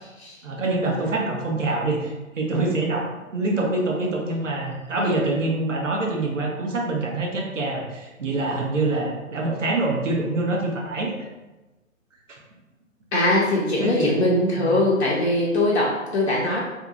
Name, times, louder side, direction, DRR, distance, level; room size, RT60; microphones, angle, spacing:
voice 1, 0.4-11.1 12.3-12.4 13.8-14.2 14.5-14.8, right 2 dB, 65° right, 0 dB, 0.8 m, -25 dB
voice 2, 13.1-16.6, left 1 dB, 55° left, -5 dB, 0.6 m, -21 dB
2.7 x 2.5 x 2.4 m, 1.1 s
figure-of-eight pair, 135°, 40 cm